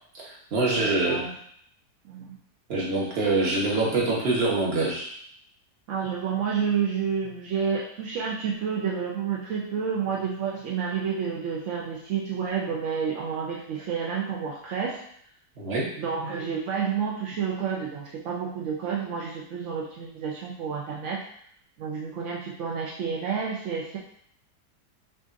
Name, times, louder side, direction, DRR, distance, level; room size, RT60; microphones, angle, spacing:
voice 1, 0.2-1.2 2.7-5.1 15.6-15.9, right 2 dB, 40° right, -4 dB, 1.2 m, -25 dB
voice 2, 0.8-1.3 2.0-2.4 5.9-15.0 16.0-21.2 21.8-24.0, right 6 dB, 65° right, -3 dB, 0.7 m, -30 dB
6.1 x 2.5 x 2.6 m, 0.65 s
omnidirectional pair, 1.7 m